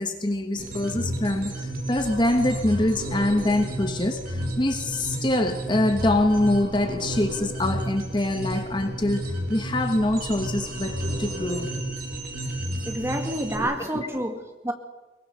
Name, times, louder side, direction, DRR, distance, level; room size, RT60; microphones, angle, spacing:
voice 1, 0.0-11.7 13.6-14.1, left 1 dB, 25° left, 6 dB, 1.2 m, -25 dB
sound 1, 0.6-13.6, right 1 dB, 50° right, 4.8 m, -32 dB
voice 2, 12.8-14.7, right 1 dB, 15° right, 4 dB, 2.0 m, -29 dB
22.5 x 21.0 x 6.7 m, 1.2 s
head